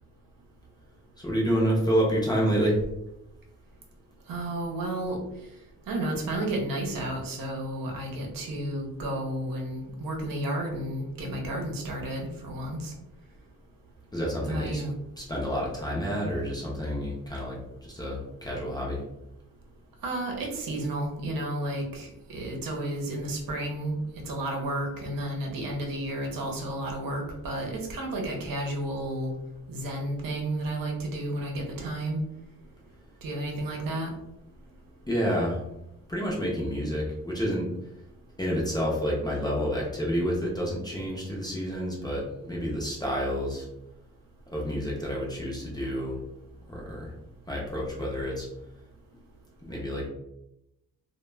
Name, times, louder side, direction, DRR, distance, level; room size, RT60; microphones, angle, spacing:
voice 1, 1.2-2.8 14.1-14.8 15.2-19.0 35.1-35.7 36.1-37.7 38.4-43.7 44.5-46.2 46.7-47.1 47.5-48.5 49.6-50.1, equal, 10° left, -4 dB, 0.5 m, -29 dB
voice 2, 4.3-5.2 5.9-12.9 14.5-14.9 20.0-23.9 24.2-29.3 29.7-32.2 33.2-34.1, right 1 dB, 75° right, 1 dB, 0.8 m, -32 dB
2.2 x 2.2 x 3.1 m, 0.85 s
wide cardioid pair, 165°, 34 cm